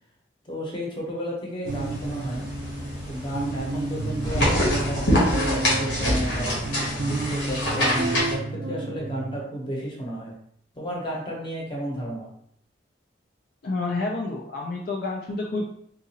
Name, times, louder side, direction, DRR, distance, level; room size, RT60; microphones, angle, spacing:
voice 1, 0.4-2.5 3.0-6.6 7.0-10.3 10.7-12.3, equal, 25° left, -3 dB, 0.8 m, -32 dB
sound 1, 1.7-8.3, left 1 dB, 80° left, 1.1 m, -26 dB
sound 2, 1.7-9.4, right 3 dB, 70° right, 0.4 m, -31 dB
voice 2, 13.6-15.7, left 3 dB, 55° left, -1 dB, 0.4 m, -29 dB
3.8 x 2.4 x 2.8 m, 0.69 s
head